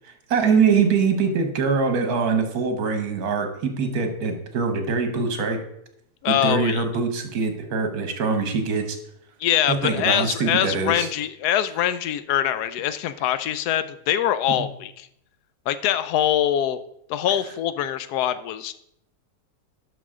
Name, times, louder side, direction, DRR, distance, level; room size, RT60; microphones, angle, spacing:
voice 1, 0.3-5.6 6.3-9.0 9.7-11.1, right 5 dB, 70° right, 6 dB, 1.6 m, -23 dB
voice 2, 6.2-6.8 9.4-15.1 15.7-16.8 17.1-18.7, left 11 dB, 80° left, 13 dB, 1.1 m, -23 dB
11.5 x 5.5 x 3.7 m, 0.75 s
omnidirectional pair, 1.7 m